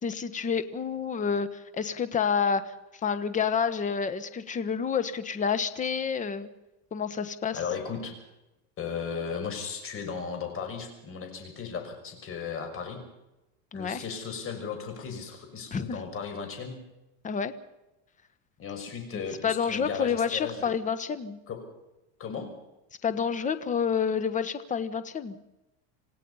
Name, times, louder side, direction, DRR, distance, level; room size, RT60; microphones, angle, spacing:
voice 1, 0.0-2.7 3.0-6.5 6.9-7.6 13.7-14.0 15.7-16.0 17.2-17.5 19.4-21.4 23.0-25.4, left 6 dB, 20° left, 12 dB, 1.3 m, -29 dB
voice 2, 7.5-8.1 8.8-13.0 13.7-16.8 18.6-20.7 21.5-21.6 22.2-22.5, left 6 dB, 35° left, 5 dB, 6.0 m, -36 dB
27.0 x 17.0 x 5.6 m, 0.96 s
supercardioid pair, 145°, 37 cm